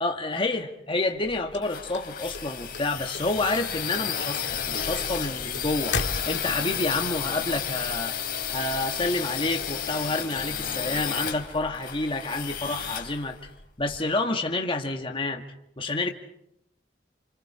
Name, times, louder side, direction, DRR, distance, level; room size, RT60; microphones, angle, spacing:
voice 1, 0.0-6.0 6.3-8.2 8.5-13.4 13.8-15.4 15.8-16.1, left 2 dB, 30° left, 3 dB, 1.8 m, -29 dB
sound 1, 1.2-14.0, left 8 dB, 55° left, 2.8 m, -32 dB
sound 2, 1.5-2.8 3.1-3.7 3.9-6.7, left 4 dB, 80° left, 1.6 m, -33 dB
29.0 x 28.5 x 4.9 m, 0.76 s
head